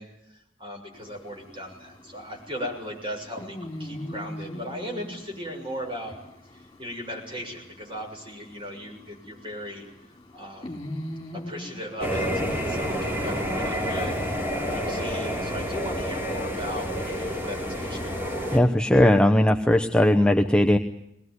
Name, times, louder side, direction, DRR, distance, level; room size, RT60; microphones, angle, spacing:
voice 1, 0.0-6.1 6.5-9.8 10.3-10.8 11.3-18.1, equal, 25° right, 1 dB, 6.9 m, -37 dB
sound 1, 0.9-14.4, left 1 dB, 20° left, 3.4 m, -42 dB
sound 2, 12.0-18.6, equal, 10° right, 4.6 m, -29 dB
voice 2, 18.5-20.8, left 1 dB, 5° left, 4 dB, 0.8 m, -18 dB
22.0 x 19.5 x 9.6 m, 0.82 s
head